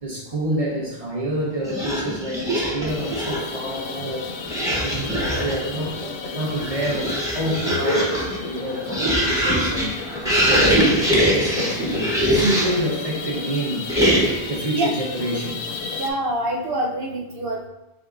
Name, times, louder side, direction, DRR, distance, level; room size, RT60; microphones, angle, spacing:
voice 1, 0.0-13.9 14.5-15.6, right 1 dB, 35° right, -4 dB, 1.1 m, -28 dB
sound 1, 1.6-3.6 4.4-5.7 6.4-12.9 13.9-14.6, equal, 5° right, 1.0 m, -22 dB
sound 2, 2.9-16.1, left 4 dB, 65° left, 0.7 m, -33 dB
voice 2, 16.0-17.7, right 1 dB, 65° right, -1 dB, 1.0 m, -25 dB
5.1 x 3.7 x 2.5 m, 0.98 s
omnidirectional pair, 1.1 m